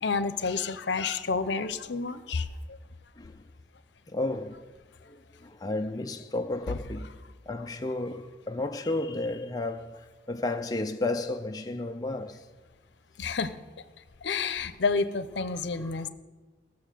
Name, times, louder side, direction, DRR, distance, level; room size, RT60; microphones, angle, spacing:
voice 1, 0.0-2.5 13.2-13.5 14.2-16.1, left 4 dB, 65° left, 0.7 m, -29 dB
voice 2, 4.1-4.6 5.1-7.2 7.5-10.0 10.3-12.4 15.5-16.0, left 2 dB, 20° left, 0.4 m, -33 dB
16.0 x 6.9 x 6.7 m
head